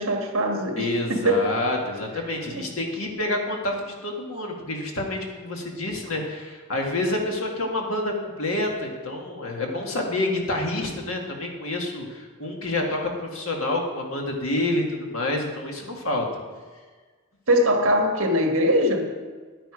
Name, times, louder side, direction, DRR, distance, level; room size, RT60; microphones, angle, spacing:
voice 1, 0.0-1.5 2.4-2.7 17.5-19.1, equal, 65° right, 3 dB, 1.5 m, -22 dB
voice 2, 0.8-16.3, left 2 dB, 65° left, 0 dB, 1.9 m, -28 dB
10.5 x 9.3 x 5.0 m, 1.4 s
head